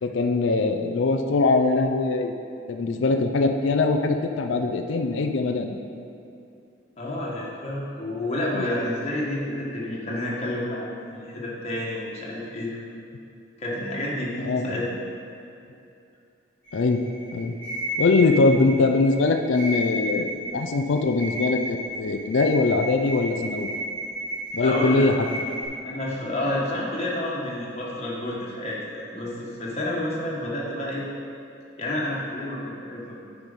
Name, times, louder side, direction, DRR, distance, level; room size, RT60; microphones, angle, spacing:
voice 1, 0.0-2.3 2.7-5.8 8.5-8.6 14.4-14.6 16.7-17.0 17.3-17.5 18.0-23.7 24.5-25.1, left 3 dB, 70° left, 5 dB, 0.4 m, -22 dB
voice 2, 7.0-12.8 13.6-15.0 24.6-25.0 25.8-31.1 31.8-33.2, left 1 dB, 30° left, -5 dB, 1.4 m, -29 dB
sound 1, 16.6-25.7, equal, 5° left, 1.7 m, -33 dB
9.1 x 4.7 x 5.3 m, 2.5 s
head